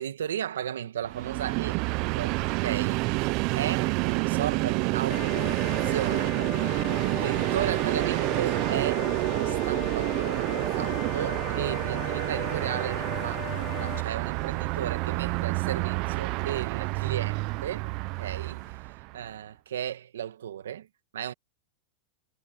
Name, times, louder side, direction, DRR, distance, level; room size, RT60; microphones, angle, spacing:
voice 1, 0.0-6.8 7.1-17.9 18.2-18.8 19.1-20.9 21.1-21.3, right 10 dB, 85° right, 1.9 m, -35 dB
Train, 1.0-19.2, right 24 dB, 50° right, 0.7 m, -28 dB
sound 1, 1.8-18.8, right 3 dB, 10° right, 5.2 m, -57 dB
sound 2, 5.1-14.0, left 18 dB, 45° left, 0.8 m, -39 dB
hypercardioid pair, 125°, 0 cm